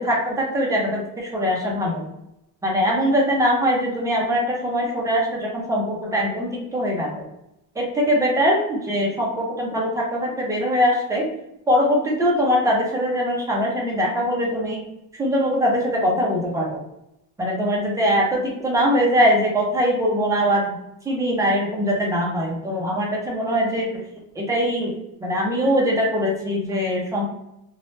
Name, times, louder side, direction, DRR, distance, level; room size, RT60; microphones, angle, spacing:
voice 1, 0.0-2.0 2.6-7.2 7.8-11.3 11.7-14.8 15.2-16.8 17.4-20.7 21.1-23.9 24.4-24.9 25.2-27.3, equal, 10° right, -3 dB, 0.3 m, -22 dB
2.6 x 2.0 x 3.0 m, 0.86 s
cardioid pair, 180°, 37 cm